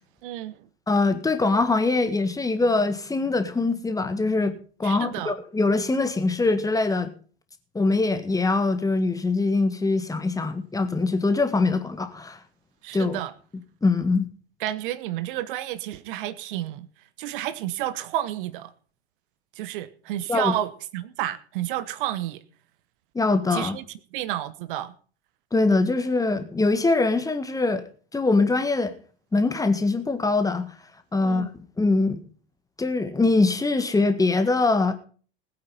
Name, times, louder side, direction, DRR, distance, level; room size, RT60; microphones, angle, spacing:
voice 1, 0.2-0.5 4.8-5.3 12.8-13.3 14.6-16.9 17.2-18.7 19.5-22.4 23.5-23.8 24.1-24.9 31.2-31.5, right 13 dB, 50° right, 1.0 m, -31 dB
voice 2, 0.9-4.5 4.8-7.1 7.7-12.4 12.9-13.2 13.8-14.3 20.3-20.5 23.1-23.8 25.5-27.8 28.1-28.9 29.3-30.7 31.1-31.5 31.8-32.2 32.8-34.9, left 3 dB, 10° left, 1.6 m, -23 dB
20.0 x 8.8 x 4.1 m
figure-of-eight pair, 80°, 32 cm